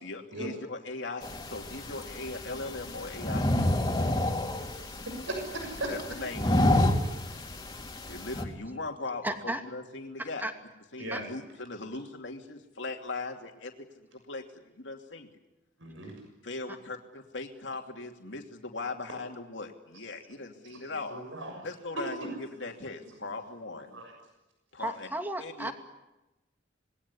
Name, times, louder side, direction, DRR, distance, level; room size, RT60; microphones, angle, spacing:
voice 1, 0.0-3.9 5.9-6.8 8.1-10.5 10.9-14.4 14.8-15.3 16.4-21.3 21.6-24.0 24.7-25.1 25.4-25.7, left 3 dB, 70° left, 3 dB, 2.8 m, -39 dB
sound 1, 1.2-8.4, left 1 dB, 20° left, 3.3 m, -29 dB
voice 2, 4.6-5.9 11.0-11.2 15.8-16.1 20.6-20.8 21.1-21.5 22.0-22.3 23.9-24.1, right 2 dB, 85° right, 3 dB, 6.8 m, -37 dB
voice 3, 9.2-9.6 10.4-10.5 11.1-11.2 24.8-25.7, right 1 dB, 10° right, 5 dB, 2.6 m, -33 dB
27.0 x 21.0 x 9.8 m, 1.0 s
head